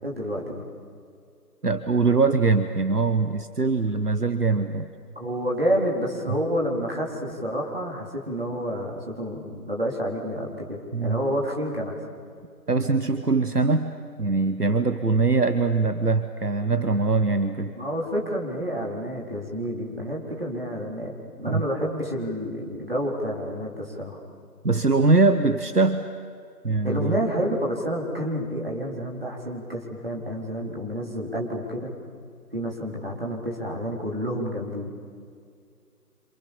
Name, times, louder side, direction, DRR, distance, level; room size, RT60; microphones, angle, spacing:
voice 1, 0.0-0.7 5.2-12.0 17.8-24.2 26.8-31.9 32.5-34.9, equal, 35° right, -2 dB, 4.2 m, -29 dB
voice 2, 1.6-4.9 10.9-11.2 12.7-13.9 14.2-17.7 21.5-21.6 24.6-26.0 26.6-27.2, right 3 dB, 70° right, 11 dB, 1.3 m, -22 dB
27.5 x 27.0 x 7.2 m, 2.3 s
figure-of-eight pair, 180°, 49 cm